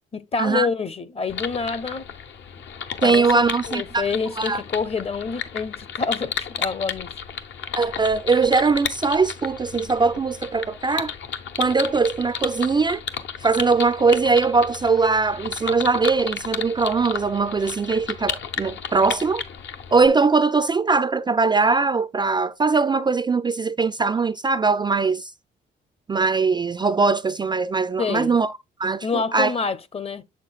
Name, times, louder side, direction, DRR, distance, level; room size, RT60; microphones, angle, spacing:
voice 1, 0.1-2.0 3.0-3.4 3.7-7.1 28.0-28.3 29.0-30.2, left 5 dB, 30° left, 0.7 m, -27 dB
sound 1, 1.3-20.1, left 7 dB, 65° left, 0.9 m, -33 dB
voice 2, 3.0-4.1 4.4-4.6 7.8-11.1 11.6-13.0 13.4-19.4 19.9-25.3 26.1-28.5 28.8-29.5, right 4 dB, 20° right, 0.4 m, -21 dB
6.9 x 6.6 x 2.3 m
cardioid pair, 90°, 20 cm